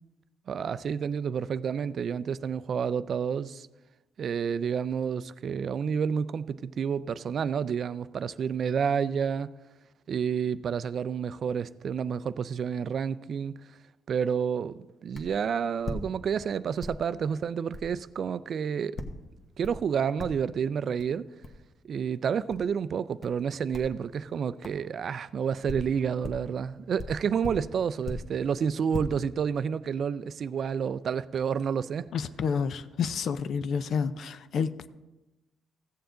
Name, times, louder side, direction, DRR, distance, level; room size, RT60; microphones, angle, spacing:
voice 1, 0.5-3.7 4.2-9.5 10.1-13.6 14.1-19.0 19.6-21.2 21.9-32.1, right 7 dB, 55° right, 0.3 m, -29 dB
sound 1, 15.1-15.4 15.8-16.5 16.8-17.1 17.7-17.9 19.0-19.2 19.6-19.9 20.2-20.6 21.0-21.1 21.4-21.6 22.5-22.7 23.2-23.4 23.7-24.0 24.6-24.8 25.4-26.5 27.0-28.4 28.7-29.0, left 2 dB, 40° left, 1.2 m, -39 dB
voice 2, 32.1-34.9, left 6 dB, 65° left, 0.5 m, -29 dB
15.5 x 7.0 x 3.8 m
cardioid pair, 90°, 0 cm